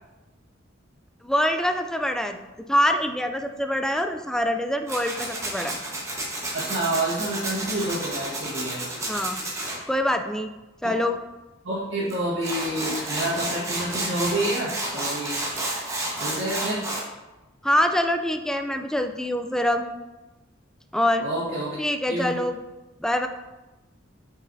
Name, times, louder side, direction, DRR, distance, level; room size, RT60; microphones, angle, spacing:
voice 1, 1.2-2.4 2.7-5.8 9.1-9.4 9.9-10.5 10.8-11.2 17.6-19.9 20.9-21.3 21.8-22.6 23.0-23.3, left 1 dB, 5° left, 6 dB, 0.4 m, -24 dB
Tools, 4.9-9.8 12.1-12.2 12.4-17.1, right 1 dB, 15° right, 1.2 m, -31 dB
voice 2, 6.5-8.8 10.8-10.9 11.6-15.4 16.2-16.9 21.2-21.8 22.1-22.4, right 1 dB, 90° right, -9 dB, 1.6 m, -28 dB
8.2 x 5.4 x 2.7 m, 1.1 s
head